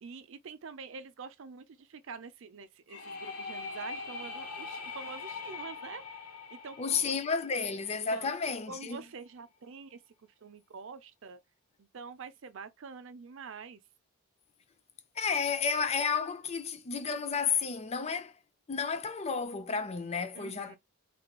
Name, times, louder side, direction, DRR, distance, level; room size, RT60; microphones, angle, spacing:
voice 1, 0.0-7.1 8.1-11.4 11.8-13.8 20.3-20.8, right 5 dB, 60° right, 0.5 m, -46 dB
sound 1, 2.9-8.5, left 4 dB, 80° left, 1.0 m, -42 dB
voice 2, 6.8-9.0 15.2-18.3 18.7-20.8, left 5 dB, 30° left, 0.4 m, -32 dB
3.3 x 2.2 x 2.9 m
head